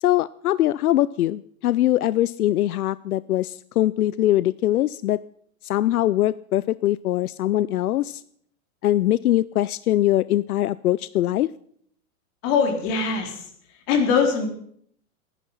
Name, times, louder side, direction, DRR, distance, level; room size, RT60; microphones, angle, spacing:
voice 1, 0.0-5.2 5.6-8.2 8.8-11.5, left 14 dB, 90° left, 18 dB, 0.6 m, -22 dB
voice 2, 12.4-13.3 13.9-14.5, left 5 dB, 45° left, 3 dB, 4.1 m, -21 dB
21.5 x 10.0 x 5.7 m, 0.64 s
hypercardioid pair, 145°, 43 cm